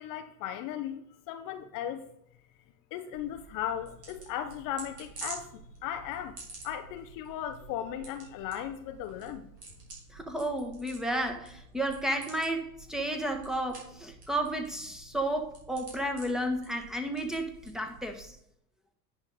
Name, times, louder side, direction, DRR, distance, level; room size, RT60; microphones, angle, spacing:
voice 1, 0.0-2.1 2.9-5.5 5.8-6.4 6.6-9.4, left 10 dB, 45° left, 0.8 m, -36 dB
sound 1, 3.1-18.3, right 3 dB, 85° right, 3.7 m, -49 dB
voice 2, 10.1-18.4, right 1 dB, ahead, 1.4 m, -32 dB
10.5 x 5.8 x 4.9 m
hypercardioid pair, 85°, 46 cm